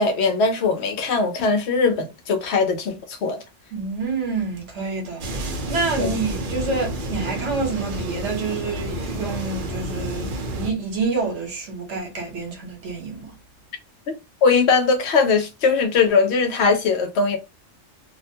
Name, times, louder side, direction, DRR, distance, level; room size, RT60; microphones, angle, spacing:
voice 1, 0.0-3.4 6.0-6.1 14.1-14.2 14.4-17.4, left 4 dB, 70° left, 0.9 m, -20 dB
voice 2, 3.7-13.3, right 4 dB, 75° right, 1.2 m, -28 dB
sound 1, 5.2-10.7, right 1 dB, 55° right, 0.7 m, -30 dB
2.5 x 2.1 x 2.7 m
omnidirectional pair, 1.2 m